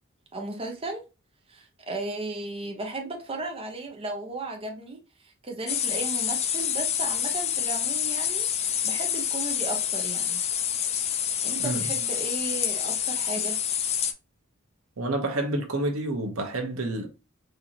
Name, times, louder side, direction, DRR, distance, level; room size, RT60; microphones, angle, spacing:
voice 1, 0.3-1.0 1.5-10.4 11.4-13.6, right 2 dB, 25° right, 0.7 m, -35 dB
sound 1, 5.7-14.1, left 9 dB, 30° left, 0.4 m, -27 dB
voice 2, 15.0-17.1, right 2 dB, 80° right, 0.9 m, -29 dB
4.3 x 2.7 x 2.7 m
head